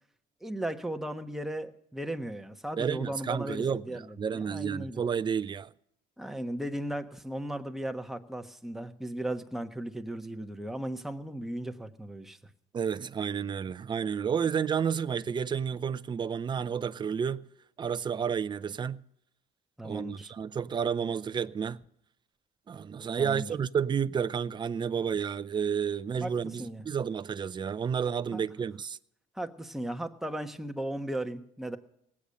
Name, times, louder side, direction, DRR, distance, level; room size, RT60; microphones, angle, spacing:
voice 1, 0.4-5.0 6.2-12.4 19.8-20.3 23.2-23.5 26.2-26.3 26.6-26.8 28.3-28.4 29.3-31.8, right 1 dB, ahead, 1.2 m, -36 dB
voice 2, 2.8-3.8 4.2-5.7 12.7-17.4 17.8-19.0 19.8-21.8 22.7-29.0, right 7 dB, 25° right, 0.5 m, -31 dB
18.5 x 8.5 x 6.5 m
cardioid pair, 110°, 17 cm